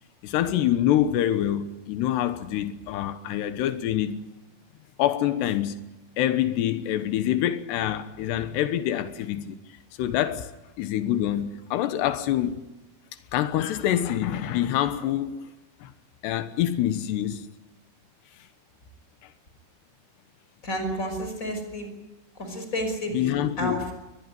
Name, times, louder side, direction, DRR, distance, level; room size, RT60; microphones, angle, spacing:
voice 1, 0.2-4.2 5.0-5.8 6.2-9.6 10.0-10.5 10.8-12.6 13.3-15.5 15.8-15.9 16.2-17.5 19.2-19.3 23.1-23.9, left 11 dB, 85° left, 3.3 m, -26 dB
voice 2, 20.6-21.9 22.4-23.9, equal, 20° left, 5.8 m, -31 dB
23.0 x 20.5 x 9.6 m
omnidirectional pair, 4.7 m